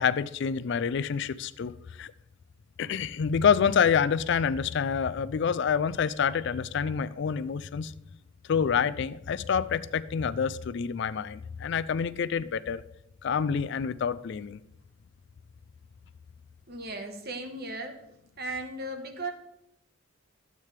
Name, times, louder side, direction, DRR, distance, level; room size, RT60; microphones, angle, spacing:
voice 1, 0.0-1.7 2.0-2.1 2.8-7.9 8.5-12.8 13.2-14.6, left 7 dB, 55° left, 0.3 m, -27 dB
voice 2, 16.7-18.0 18.4-19.3, right 2 dB, 50° right, 1.2 m, -36 dB
13.0 x 8.3 x 3.3 m
head